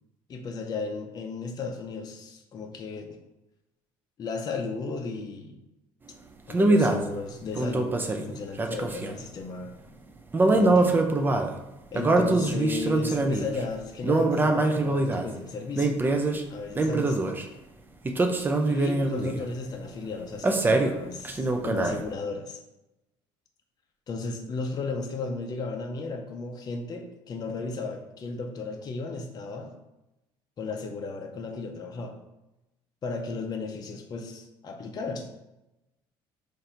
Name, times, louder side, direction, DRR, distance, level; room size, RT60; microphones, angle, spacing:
voice 1, 0.3-3.2 4.2-5.6 6.5-9.7 10.5-11.0 11.9-16.0 16.5-17.2 18.7-22.6 24.1-29.7 30.6-32.1 33.0-35.3, left 4 dB, 35° left, 2 dB, 0.5 m, -35 dB
sound 1, 6.5-7.1 7.6-9.2 10.3-11.5 11.9-13.6 14.0-15.3 15.8-16.4 16.8-17.4 18.0-19.4 20.4-21.0 21.2-22.0, right 2 dB, 20° right, 0.4 m, -24 dB
3.8 x 2.6 x 4.3 m, 0.95 s
cardioid pair, 100°, 11 cm